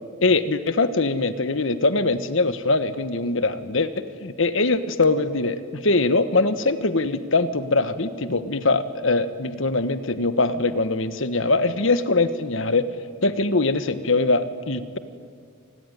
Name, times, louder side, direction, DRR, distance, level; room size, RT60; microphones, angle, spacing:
voice 1, 0.2-12.9 13.2-15.0, left 3 dB, 65° left, 11 dB, 1.3 m, -22 dB
27.5 x 20.0 x 9.9 m, 2.2 s
head